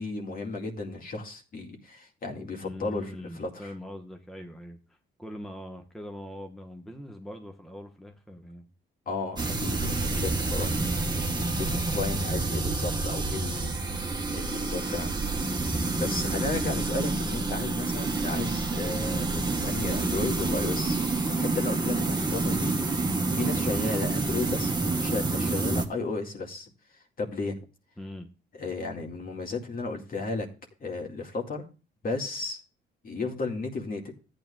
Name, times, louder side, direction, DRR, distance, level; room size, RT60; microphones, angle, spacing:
voice 1, 0.0-3.7 9.1-10.8 11.4-21.0 21.3-22.7 23.3-26.7 27.2-27.6 28.6-30.5 30.8-31.6 32.0-32.6 33.0-34.1, left 3 dB, 45° left, 2 dB, 2.1 m, -34 dB
voice 2, 2.5-4.8 5.2-8.7 22.6-22.9 28.0-28.3, left 1 dB, ahead, 4 dB, 1.3 m, -42 dB
sound 1, 9.4-25.8, right 3 dB, 20° right, 1.4 m, -28 dB
14.0 x 9.2 x 2.4 m, 0.32 s
cardioid pair, 90°, 20 cm